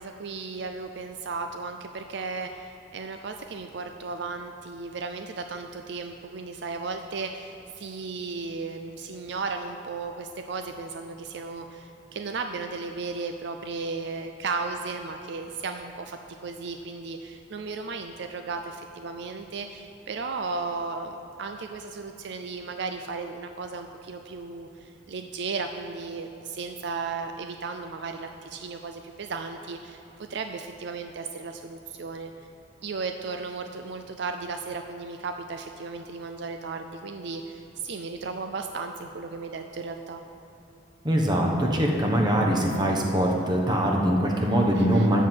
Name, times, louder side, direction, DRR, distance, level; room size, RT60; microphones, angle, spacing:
voice 1, 0.0-32.5 32.8-40.2 44.8-45.1, right 4 dB, 65° right, 6 dB, 0.5 m, -35 dB
voice 2, 41.0-45.2, equal, 25° right, 0 dB, 1.2 m, -23 dB
13.0 x 4.6 x 7.9 m, 3.0 s
head